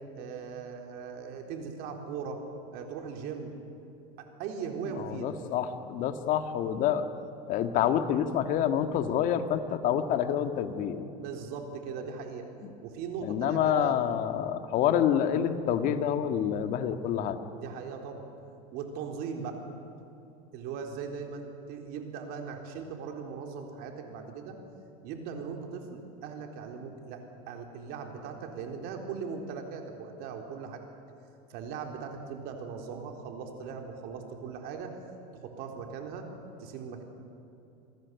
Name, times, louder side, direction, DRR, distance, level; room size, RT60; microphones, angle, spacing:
voice 1, 0.1-2.4 2.7-3.5 4.2-5.4 11.2-12.5 12.8-14.0 17.5-18.2 18.7-19.6 20.5-24.6 25.0-27.2 27.5-30.8 31.5-34.9 35.3-36.3 36.6-37.0, right 6 dB, 50° right, 3 dB, 4.0 m, -39 dB
voice 2, 5.0-7.1 7.5-11.0 12.6-12.7 13.2-17.4, left 9 dB, 45° left, 8 dB, 1.8 m, -27 dB
28.0 x 19.0 x 8.3 m, 2.9 s
supercardioid pair, 145°, 20 cm